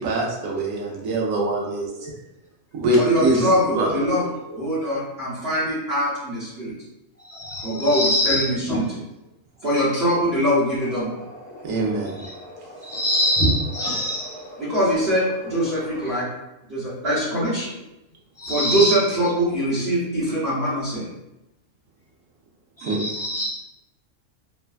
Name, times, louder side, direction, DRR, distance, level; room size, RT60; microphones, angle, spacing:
voice 1, 0.0-2.1 2.7-3.4 3.7-3.9 11.6-12.3 22.8-23.0, right 2 dB, 85° right, -2 dB, 1.1 m, -23 dB
voice 2, 2.9-4.3 4.5-6.7 7.6-8.9 9.6-11.2 14.6-16.3 16.7-17.7 18.5-21.1, equal, 50° right, -10 dB, 1.0 m, -23 dB
voice 3, 7.2-8.9 12.2-12.3 12.8-14.4 18.4-19.0 22.8-23.5, equal, 20° left, -6 dB, 0.4 m, -24 dB
sound 1, 10.5-16.3, equal, 50° left, 1.2 m, -41 dB
3.1 x 2.2 x 2.3 m, 0.93 s
omnidirectional pair, 1.4 m